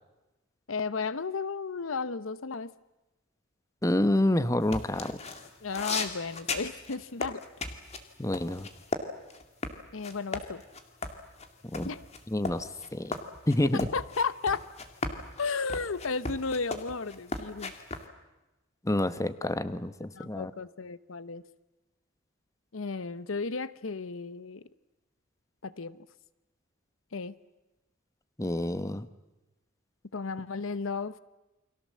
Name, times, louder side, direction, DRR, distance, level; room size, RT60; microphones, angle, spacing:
voice 1, 0.7-2.7 5.6-7.4 9.9-10.6 11.8-12.0 13.9-14.6 15.4-17.7 20.1-21.4 22.7-24.7 25.6-26.0 27.1-27.4 30.1-31.2, left 4 dB, 80° left, 16 dB, 0.9 m, -33 dB
voice 2, 3.8-5.2 8.2-8.7 11.7-11.9 12.3-13.2 13.5-13.9 18.8-20.5 28.4-29.1, left 1 dB, 15° left, 12 dB, 0.9 m, -28 dB
sound 1, 4.6-9.0 9.3-18.0, left 3 dB, 30° left, 2.3 m, -36 dB
29.5 x 23.5 x 7.6 m, 1.0 s
head